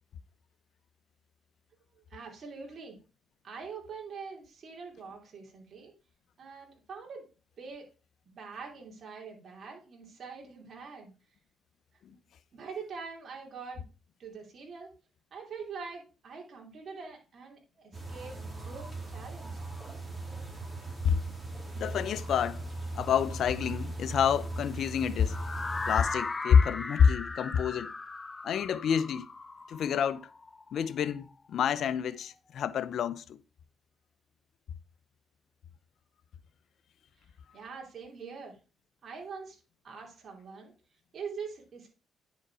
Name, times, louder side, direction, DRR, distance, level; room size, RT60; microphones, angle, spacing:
voice 1, 2.1-3.0 3.4-5.9 6.4-7.3 7.6-7.9 8.3-11.1 12.1-12.3 12.5-13.8 14.2-14.9 15.3-18.4 18.6-19.6 37.5-38.6 39.0-39.6 39.8-40.7 41.1-41.9, right 5 dB, 55° right, 2.8 m, -44 dB
sound 1, 17.9-26.1, right 2 dB, 15° right, 3.5 m, -39 dB
voice 2, 21.8-22.7 22.9-25.4 25.9-27.9 28.4-29.3 29.7-30.3 30.7-33.4, left 7 dB, 65° left, 0.6 m, -27 dB
sound 2, 25.3-31.2, left 3 dB, 25° left, 0.6 m, -38 dB
10.0 x 5.3 x 4.8 m
cardioid pair, 90°, 0 cm